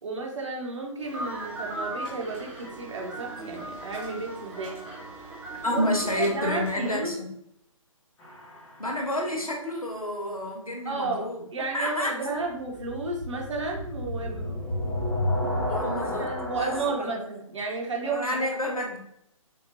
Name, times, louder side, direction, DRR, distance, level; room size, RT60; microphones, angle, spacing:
voice 1, 0.0-4.8 5.7-5.9 6.2-7.1 10.8-14.7 16.0-18.8, right 3 dB, 60° right, -1 dB, 1.3 m, -33 dB
sound 1, 1.0-7.0, right 2 dB, 5° right, 0.3 m, -38 dB
voice 2, 5.6-7.3 8.8-11.4 11.7-12.2 15.6-17.2 18.0-19.0, left 1 dB, 90° left, 1 dB, 1.2 m, -29 dB
sound 2, 8.2-9.1 12.6-16.9, left 1 dB, 10° left, 0.9 m, -31 dB
5.9 x 2.6 x 2.7 m, 0.76 s
figure-of-eight pair, 140°, 18 cm